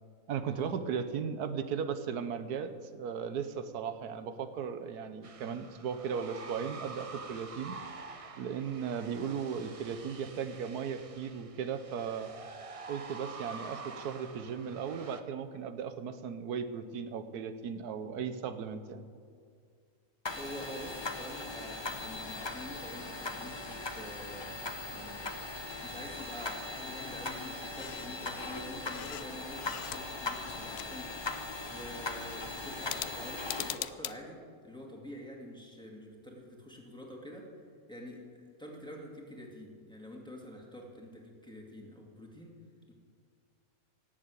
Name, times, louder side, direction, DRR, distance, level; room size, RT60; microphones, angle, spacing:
voice 1, 0.3-7.8 8.4-12.3 12.9-19.1, right 7 dB, 85° right, 10 dB, 1.4 m, -36 dB
sound 1, 5.2-15.2, right 4 dB, 40° right, 0.4 m, -47 dB
sound 2, 20.2-33.7, left 2 dB, 20° left, 0.8 m, -39 dB
voice 2, 20.4-37.5 37.9-42.5 42.9-43.0, equal, 5° left, -2 dB, 2.3 m, -47 dB
sound 3, 27.7-28.2 28.5-30.2 30.5-31.4 32.8-34.2, left 12 dB, 75° left, 0.6 m, -42 dB
18.0 x 7.4 x 8.2 m, 2.1 s
omnidirectional pair, 1.6 m